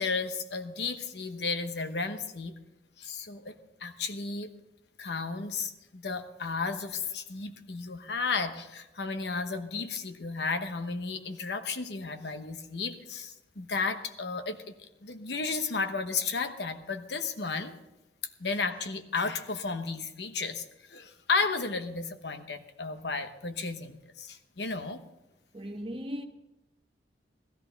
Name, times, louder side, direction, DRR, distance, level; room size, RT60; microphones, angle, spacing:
voice 1, 0.0-2.5 3.0-3.5 3.8-4.5 5.0-17.8 18.4-25.0, left 4 dB, 70° left, 1.0 m, -33 dB
voice 2, 25.5-26.3, equal, 30° right, 0.9 m, -37 dB
15.5 x 13.5 x 4.0 m
head